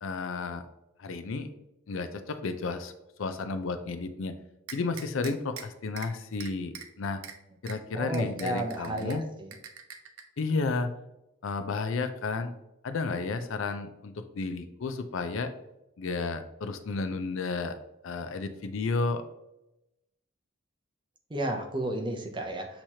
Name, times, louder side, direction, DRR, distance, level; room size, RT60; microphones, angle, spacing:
voice 1, 0.0-0.6 1.0-1.5 1.9-2.9 3.2-4.3 4.7-7.2 7.6-9.2 10.4-10.9 11.4-12.5 12.8-15.5 16.0-17.8 18.0-19.2, left 3 dB, 65° left, 9 dB, 0.4 m, -32 dB
sound 1, 4.7-5.6 6.0-6.1 6.4-6.9 7.2-7.3 7.7-7.8 8.1-9.2 9.5-10.2, right 8 dB, 80° right, 0.6 m, -42 dB
voice 2, 8.0-9.5 21.3-22.7, right 1 dB, 20° right, 3 dB, 0.5 m, -32 dB
6.2 x 2.9 x 2.8 m, 0.91 s
head